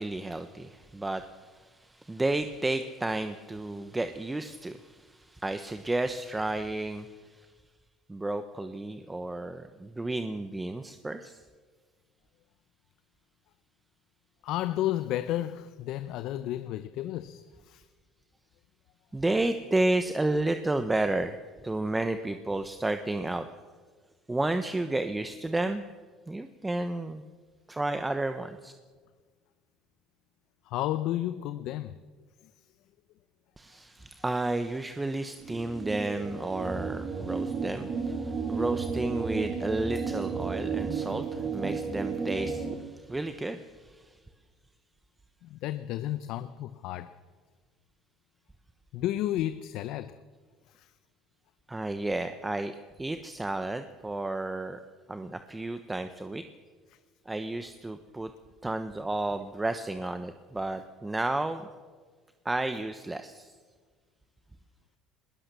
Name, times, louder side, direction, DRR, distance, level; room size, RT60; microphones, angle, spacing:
voice 1, 0.0-7.5 8.1-11.4 19.1-21.4 21.6-23.5 24.3-25.8 26.3-27.2 27.7-28.7 33.6-44.2 51.7-52.7 53.0-54.8 55.1-56.4 57.3-58.3 58.6-61.7 62.4-63.5, right 2 dB, 10° right, 1.1 m, -32 dB
voice 2, 14.4-17.8 30.7-32.0 45.4-47.1 48.9-50.1 50.8-50.9, left 13 dB, 70° left, 0.8 m, -32 dB
sound 1, 35.4-42.7, right 5 dB, 40° right, 2.8 m, -33 dB
20.5 x 19.0 x 6.9 m
supercardioid pair, 100°, 0 cm